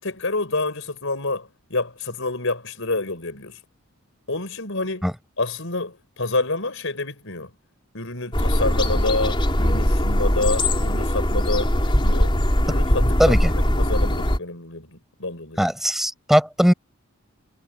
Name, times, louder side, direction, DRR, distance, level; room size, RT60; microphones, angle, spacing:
voice 1, 0.0-3.6 4.3-5.1 5.4-7.5 7.9-12.3 12.6-15.6, left 2 dB, 65° left, 5.5 m, -28 dB
sound 1, 8.3-14.4, equal, 25° left, 3.9 m, -20 dB
voice 2, 13.2-13.5 15.6-16.7, equal, ahead, 5.4 m, -19 dB
head